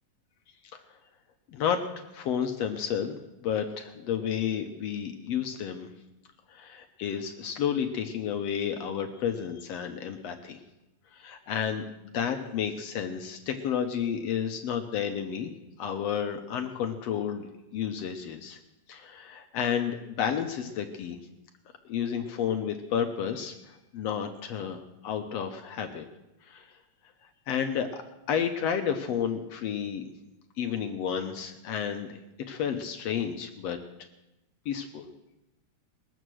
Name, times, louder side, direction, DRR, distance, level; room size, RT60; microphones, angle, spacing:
voice 1, 1.5-5.9 6.5-10.6 11.1-11.8 12.1-15.5 15.8-18.6 18.9-21.2 21.9-26.1 26.5-26.7 27.5-28.0 28.3-30.1 30.6-33.8 34.7-35.1, left 8 dB, 65° left, 5 dB, 1.9 m, -31 dB
21.5 x 7.9 x 6.3 m, 0.95 s
omnidirectional pair, 3.4 m